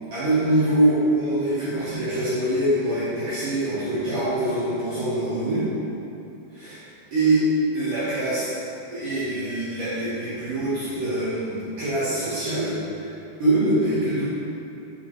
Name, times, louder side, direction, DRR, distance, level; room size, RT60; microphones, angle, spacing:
voice 1, 0.1-5.7 6.5-6.8 7.1-7.5 7.7-8.5 8.9-13.1 13.4-14.2, right 1 dB, 80° right, -14 dB, 1.8 m, -24 dB
7.2 x 4.4 x 3.1 m, 2.7 s
omnidirectional pair, 5.7 m